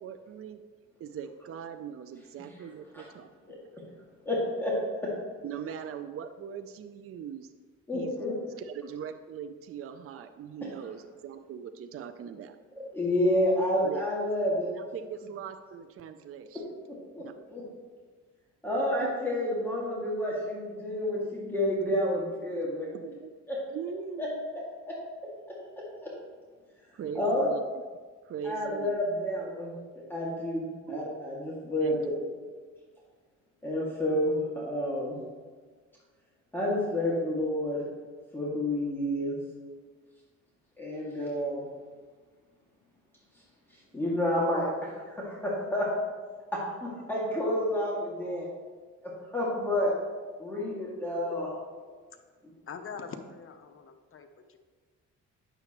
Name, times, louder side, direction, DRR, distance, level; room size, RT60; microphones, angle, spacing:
voice 1, 0.0-0.6 1.0-3.7 5.4-7.5 7.9-8.2 8.6-12.6 13.5-14.0 14.7-16.6 17.2-17.3 19.0-19.1 20.0-20.1 20.4-20.5 22.6-23.3 23.7-24.5 26.9-27.6 28.3-28.9 30.9-31.0 31.8-32.3, right 8 dB, 50° right, 8 dB, 0.5 m, -41 dB
voice 2, 4.3-4.8 5.0-5.1 7.9-8.4 12.9-14.7 16.9-17.2 17.5-17.6 18.6-22.9 23.5-23.6 24.2-24.3 24.9-25.0 27.2-27.5 28.4-29.7 30.1-32.1 33.6-35.2 36.5-37.8 38.3-39.4 40.8-41.6 43.9-45.9 46.5-48.5 49.0-49.9 50.4-51.5, left 1 dB, 5° left, -6 dB, 2.2 m, -29 dB
voice 3, 52.7-54.6, left 5 dB, 45° left, 7 dB, 0.8 m, -43 dB
9.1 x 6.9 x 3.0 m, 1.5 s
cardioid pair, 90°, 30 cm